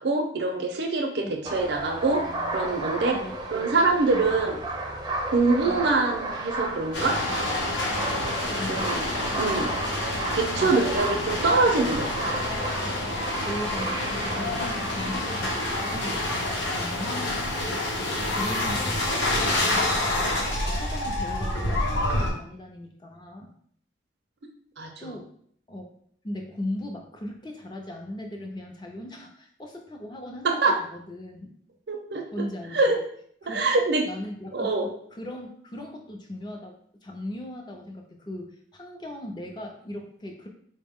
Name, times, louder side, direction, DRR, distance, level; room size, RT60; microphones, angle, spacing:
voice 1, 0.0-2.3 2.5-3.2 3.5-4.6 5.3-7.2 8.7-9.1 9.4-9.7 10.3-12.3 24.8-25.1 30.4-30.8 31.9-32.2 32.7-33.0 33.5-34.1 34.5-34.9, right 3 dB, 65° right, 3 dB, 0.5 m, -24 dB
sound 1, 1.4-17.2, right 2 dB, 20° right, 0.5 m, -34 dB
voice 2, 3.0-3.7 4.1-4.5 5.6-5.9 8.6-8.9 9.2-9.4 10.6-10.9 13.5-23.5 25.0-25.3 25.7-25.9 26.2-31.5 32.3-33.0 33.4-33.7 34.0-40.5, left 1 dB, 25° left, 1 dB, 0.5 m, -38 dB
sound 2, 6.9-22.3, left 1 dB, 85° left, 0.9 m, -28 dB
4.0 x 2.1 x 3.5 m, 0.63 s
head